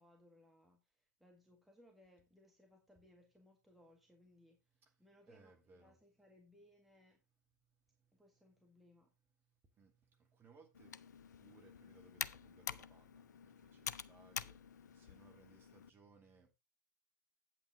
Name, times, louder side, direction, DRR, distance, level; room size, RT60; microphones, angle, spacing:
voice 1, 0.0-7.2 8.1-9.1, left 1 dB, ahead, 1.8 m, -67 dB
voice 2, 5.3-6.0 9.8-9.9 10.4-10.9 11.4-13.2 13.7-14.6 15.0-16.5, right 4 dB, 20° right, 2.4 m, -65 dB
Computer keyboard, 10.7-15.9, left 8 dB, 65° left, 0.5 m, -47 dB
8.6 x 8.4 x 3.6 m
figure-of-eight pair, 105°, 10 cm